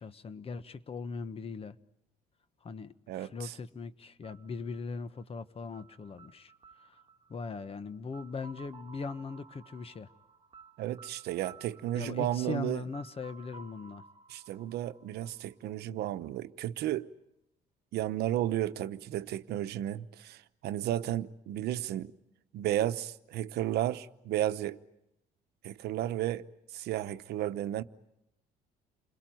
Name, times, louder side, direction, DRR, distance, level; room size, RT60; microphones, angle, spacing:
voice 1, 0.0-1.8 2.6-6.5 6.8-7.0 7.3-10.1 11.9-14.0, left 4 dB, 35° left, 1.2 m, -40 dB
voice 2, 3.1-3.5 10.8-12.8 14.3-17.1 17.9-22.1 22.5-24.8 25.6-26.5 26.7-27.8, right 13 dB, 75° right, 1.0 m, -33 dB
sound 1, 4.2-16.0, right 5 dB, 30° right, 1.8 m, -56 dB
29.0 x 21.5 x 9.2 m
cardioid pair, 110°, 17 cm